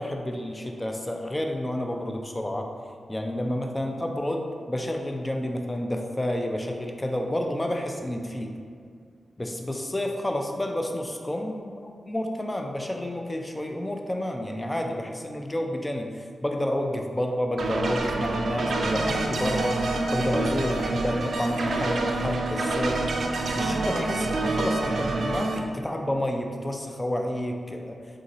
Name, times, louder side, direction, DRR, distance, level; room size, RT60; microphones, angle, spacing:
voice 1, 0.0-2.7 3.1-8.5 9.4-23.0 23.5-28.0, left 1 dB, 20° left, 3 dB, 0.4 m, -30 dB
sound 1, 17.6-25.6, right 2 dB, 75° right, 0.4 m, -27 dB
3.8 x 2.5 x 4.2 m, 2.2 s
cardioid pair, 55°, 0 cm